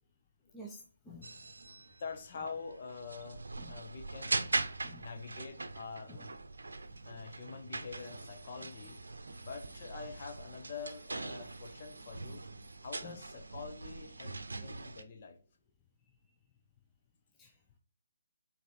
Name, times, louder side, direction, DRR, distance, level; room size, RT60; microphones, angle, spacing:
voice 1, 0.5-1.3 3.6-3.7 4.8-5.1 6.1-6.2 13.0-13.2 17.4-17.5, left 1 dB, 10° left, -1 dB, 0.8 m, -50 dB
sound 1, 1.2-15.0, right 3 dB, 60° right, 0.7 m, -41 dB
voice 2, 2.0-4.5 5.0-6.3 7.0-9.0 9.4-12.5 12.8-15.4, left 5 dB, 35° left, 5 dB, 1.0 m, -46 dB
5.8 x 4.4 x 4.2 m, 0.41 s
figure-of-eight pair, 145°, 0 cm